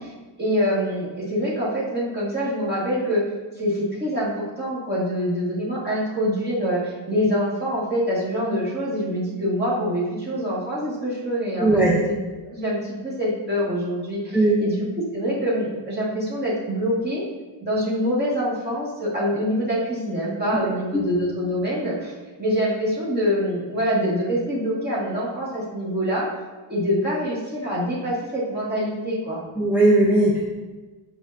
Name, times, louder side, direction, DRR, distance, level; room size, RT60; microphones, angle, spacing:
voice 1, 0.4-3.2 3.6-12.2 12.5-17.2 17.6-26.3 26.7-29.4, equal, 20° right, -7 dB, 1.9 m, -25 dB
voice 2, 11.6-12.0 14.3-14.5 20.9-21.0 29.6-30.4, right 1 dB, 5° right, -5 dB, 0.6 m, -17 dB
8.2 x 5.1 x 2.6 m, 1.3 s
cardioid pair, 140°, 48 cm